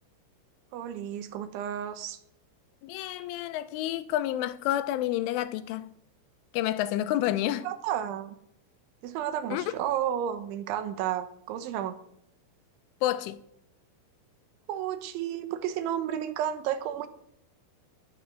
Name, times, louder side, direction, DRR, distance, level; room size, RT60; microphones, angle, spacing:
voice 1, 0.7-2.2 7.6-8.4 9.0-12.0 14.7-17.1, right 10 dB, 80° right, 3.5 m, -32 dB
voice 2, 2.8-5.9 6.5-7.7 9.5-9.6 13.0-13.4, left 13 dB, 90° left, 3.3 m, -29 dB
20.5 x 9.3 x 6.5 m
omnidirectional pair, 5.6 m